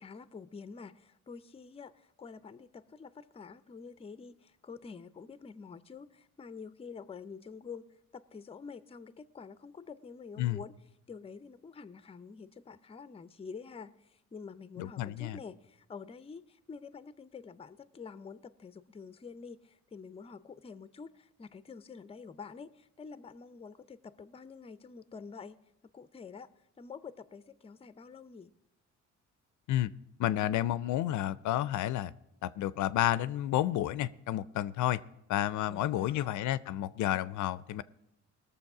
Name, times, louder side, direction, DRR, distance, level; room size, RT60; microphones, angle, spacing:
voice 1, 0.0-10.7 11.1-25.6 25.9-26.5 26.8-28.5 35.7-36.3, left 5 dB, 20° left, 14 dB, 0.5 m, -47 dB
voice 2, 14.8-15.4 29.7-29.9 30.2-32.1 32.4-35.0 35.3-37.8, left 13 dB, 75° left, 17 dB, 0.5 m, -31 dB
19.5 x 6.8 x 4.8 m, 0.85 s
cardioid pair, 90°, 30 cm